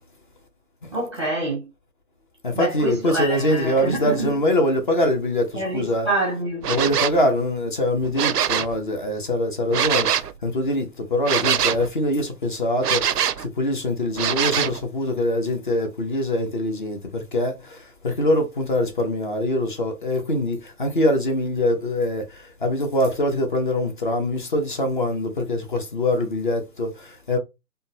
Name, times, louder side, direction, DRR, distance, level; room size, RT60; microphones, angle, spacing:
voice 1, 0.9-1.7 2.5-4.3 5.5-6.7, right 2 dB, 20° right, 0.6 m, -27 dB
voice 2, 2.4-6.1 6.7-10.1 10.4-13.0 13.4-17.8 18.0-22.3 22.6-27.4, left 1 dB, 35° left, 0.7 m, -23 dB
sound 1, 6.6-7.2 8.0-8.8 9.7-10.3 11.2-11.9 12.8-13.5 14.2-14.8, right 9 dB, 90° right, 0.5 m, -23 dB
3.7 x 2.2 x 2.6 m
figure-of-eight pair, 145°, 46 cm